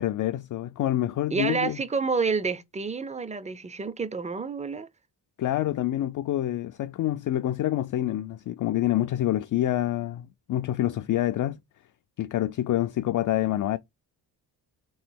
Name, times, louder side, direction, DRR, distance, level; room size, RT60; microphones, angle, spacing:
voice 1, 0.0-1.8 5.4-11.6 12.2-13.8, left 13 dB, 50° left, 0.4 m, -27 dB
voice 2, 1.3-4.9, right 5 dB, 15° right, 0.5 m, -29 dB
3.2 x 3.1 x 4.5 m
cardioid pair, 75°, 42 cm